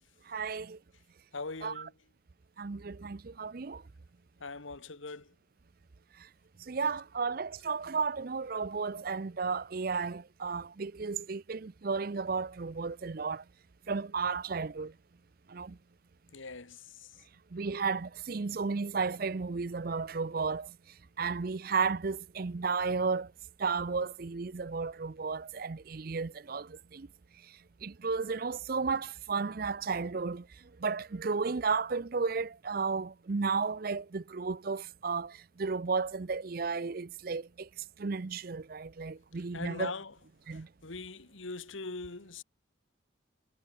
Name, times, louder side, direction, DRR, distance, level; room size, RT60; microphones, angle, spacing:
voice 1, 0.3-0.8 1.6-1.9 2.6-3.8 6.2-6.3 6.6-13.4 13.9-14.9 15.5-15.8 17.5-20.7 21.2-23.3 23.6-27.1 27.8-30.5 30.8-37.7 38.0-39.9 40.5-40.7, right 4 dB, 45° right, 0.5 m, -33 dB
voice 2, 1.3-1.9 4.4-5.3 16.3-17.1 39.5-40.1 40.5-42.4, left 3 dB, 75° left, 1.6 m, -41 dB
head